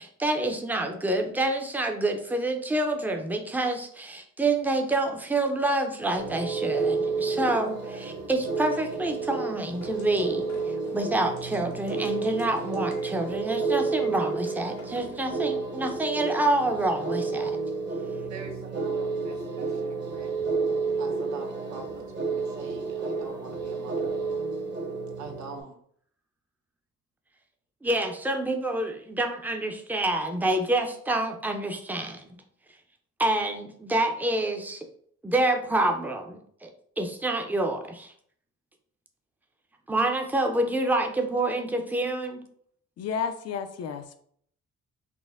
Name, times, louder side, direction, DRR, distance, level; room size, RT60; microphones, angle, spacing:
voice 1, 0.0-17.5 27.8-32.3 33.2-34.9 35.2-36.7 37.0-38.1 39.9-42.4, right 2 dB, 5° right, 4 dB, 0.5 m, -27 dB
sound 1, 6.2-25.6, right 4 dB, 35° right, 1.0 m, -31 dB
sound 2, 9.8-15.3, left 2 dB, 75° left, 1.2 m, -50 dB
voice 2, 18.3-20.6 20.9-24.2 24.6-24.8 25.2-25.8, right 4 dB, 65° right, 3 dB, 0.9 m, -44 dB
voice 3, 43.0-44.2, left 6 dB, 55° left, 9 dB, 0.5 m, -32 dB
4.2 x 2.1 x 3.5 m, 0.63 s
cardioid pair, 90°, 30 cm